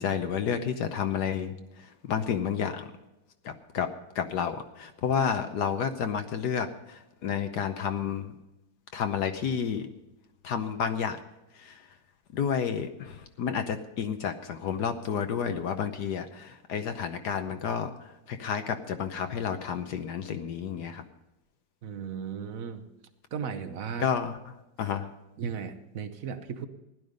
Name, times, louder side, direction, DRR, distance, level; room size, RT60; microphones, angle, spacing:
voice 1, 0.0-2.9 3.4-8.4 8.9-9.9 10.4-11.2 11.5-11.9 12.3-21.0 24.0-24.4 24.8-25.1, left 7 dB, 65° left, 8 dB, 1.3 m, -31 dB
voice 2, 21.8-22.9 23.3-24.1 25.4-26.7, right 6 dB, 50° right, 9 dB, 1.2 m, -36 dB
15.5 x 11.5 x 5.2 m, 0.95 s
omnidirectional pair, 2.1 m